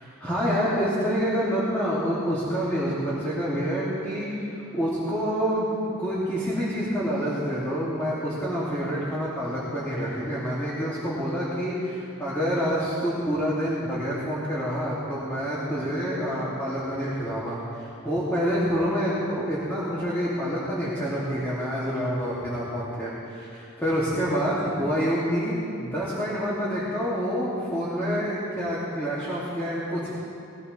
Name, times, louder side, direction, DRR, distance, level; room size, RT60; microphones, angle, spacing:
voice 1, 0.2-5.7 6.0-30.1, equal, 10° left, -10 dB, 2.5 m, -27 dB
19.0 x 17.5 x 3.3 m, 2.9 s
head